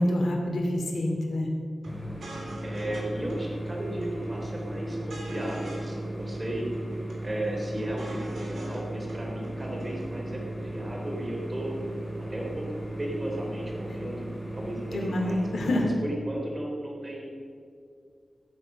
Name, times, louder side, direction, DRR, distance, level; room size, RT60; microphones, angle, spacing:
voice 1, 0.0-1.5 14.9-15.9, left 1 dB, 85° left, 0 dB, 2.6 m, -27 dB
sound 1, 1.8-1.9 2.2-3.0 3.3-3.4 3.7-4.3 4.6-5.9 6.2-6.3 6.6-7.1 7.4-8.8 9.1-9.2 9.4-10.0, right 1 dB, 85° right, 3.5 m, -44 dB
sound 2, 1.9-15.8, right 1 dB, 5° right, 4.4 m, -36 dB
voice 2, 2.6-11.8 12.3-12.7 13.0-15.4 16.0-17.3, right 1 dB, 25° right, -1 dB, 3.3 m, -35 dB
15.0 x 8.7 x 6.6 m, 2.3 s
wide cardioid pair, 115°, 0 cm